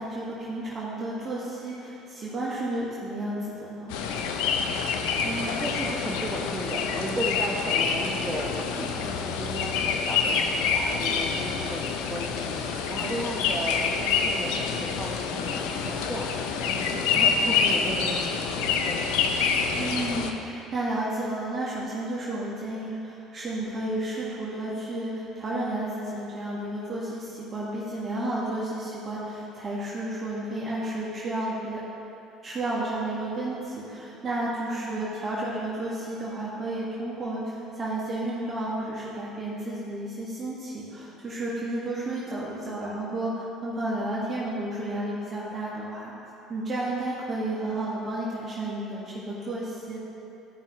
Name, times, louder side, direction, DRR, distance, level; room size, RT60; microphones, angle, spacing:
voice 1, 0.0-3.9 19.8-31.8 32.4-46.1 46.5-50.0, right 1 dB, 30° right, -7 dB, 1.7 m, -32 dB
sound 1, 3.9-20.3, left 5 dB, 80° left, 0.6 m, -27 dB
voice 2, 5.2-11.8 12.1-16.3 16.7-19.1 34.6-35.1, right 1 dB, 15° right, -4 dB, 1.2 m, -35 dB
13.5 x 5.5 x 3.1 m, 2.9 s
supercardioid pair, 75°, 0 cm